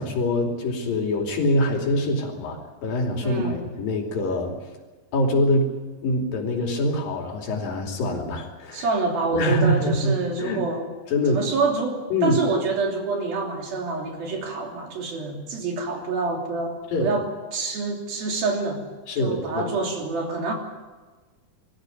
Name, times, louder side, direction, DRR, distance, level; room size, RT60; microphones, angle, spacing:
voice 1, 0.0-4.5 5.1-5.7 6.0-8.9 9.3-10.6 11.1-11.4 12.1-12.4 16.9-17.1 19.1-19.6, left 1 dB, 65° left, 2 dB, 4.5 m, -24 dB
voice 2, 3.2-3.6 8.7-10.9 11.3-18.8 19.2-20.5, right 3 dB, 70° right, 1 dB, 4.9 m, -27 dB
23.5 x 14.5 x 9.3 m, 1.3 s
omnidirectional pair, 4.4 m